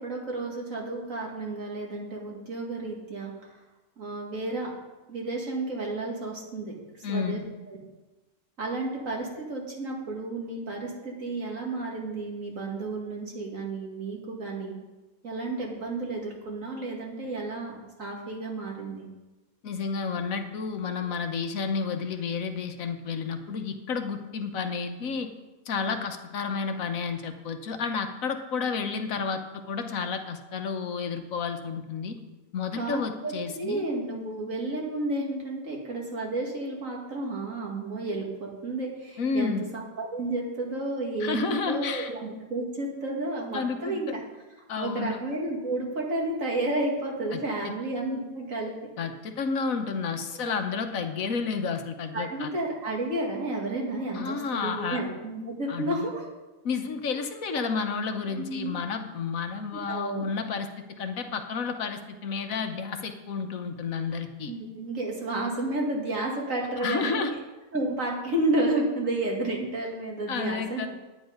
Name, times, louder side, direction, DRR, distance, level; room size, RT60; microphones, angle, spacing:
voice 1, 0.0-3.6 4.0-4.7 5.1-7.4 7.7-7.8 8.6-14.8 15.2-19.1 32.7-44.2 44.8-48.8 50.4-50.5 52.1-56.3 57.5-57.6 58.3-58.8 59.7-60.3 64.5-67.3 67.7-70.9, right 2 dB, 60° right, -1 dB, 2.6 m, -31 dB
voice 2, 7.0-7.4 19.6-25.3 25.7-32.2 32.5-33.8 39.2-39.6 41.2-42.1 43.5-44.0 44.7-45.2 47.3-47.7 49.0-52.5 54.1-55.0 55.7-56.0 56.6-60.7 61.0-64.5 66.8-67.3 70.3-70.9, left 5 dB, 70° left, 6 dB, 1.3 m, -31 dB
10.5 x 9.6 x 5.2 m, 1.1 s
omnidirectional pair, 1.5 m